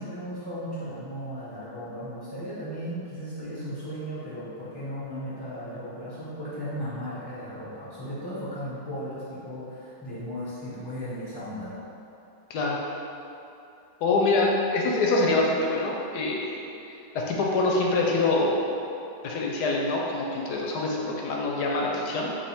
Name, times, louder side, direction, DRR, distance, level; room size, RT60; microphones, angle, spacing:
voice 1, 0.0-11.8, equal, 30° left, -11 dB, 0.4 m, -36 dB
voice 2, 12.5-12.9 14.0-16.5 16.9-18.7 19.2-22.3, left 2 dB, 75° left, -2 dB, 1.1 m, -25 dB
3.4 x 2.8 x 4.1 m, 2.8 s
omnidirectional pair, 1.9 m